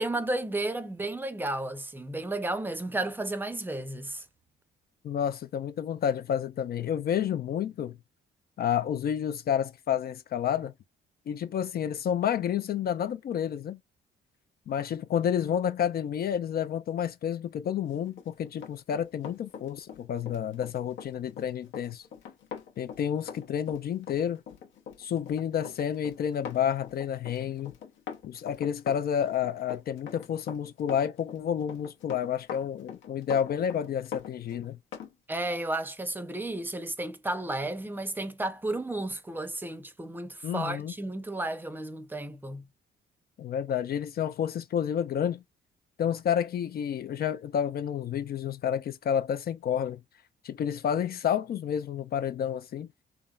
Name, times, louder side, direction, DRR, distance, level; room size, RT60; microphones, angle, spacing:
voice 1, 0.0-4.2 35.3-42.7, right 2 dB, 10° right, 0.6 m, -33 dB
voice 2, 5.0-8.0 8.6-10.7 11.3-13.8 14.7-22.0 22.8-24.4 25.0-27.7 28.2-34.8 40.4-40.9 43.4-45.4 46.0-50.0 50.4-52.9, left 9 dB, 50° left, 0.4 m, -30 dB
Run, 18.1-35.1 35.4-35.6, left 7 dB, 75° left, 0.8 m, -43 dB
3.4 x 2.0 x 2.3 m
cardioid pair, 90°, 20 cm